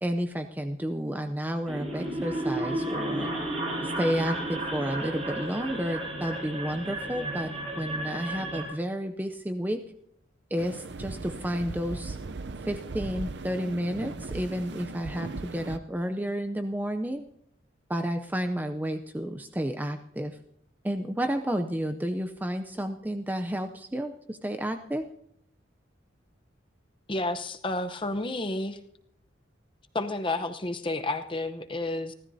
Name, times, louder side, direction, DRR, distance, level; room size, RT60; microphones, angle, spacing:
voice 1, 0.0-3.3 3.8-9.8 10.5-12.2 12.6-17.2 17.9-20.4 20.8-25.1, equal, 10° right, 6 dB, 0.5 m, -31 dB
sound 1, 1.7-8.6, right 1 dB, 30° right, 7.9 m, -33 dB
sound 2, 10.6-15.8, right 3 dB, 60° right, 0.6 m, -38 dB
voice 2, 27.1-28.8 29.9-32.1, left 2 dB, 25° left, 8 dB, 0.8 m, -31 dB
28.5 x 13.0 x 2.7 m, 0.70 s
head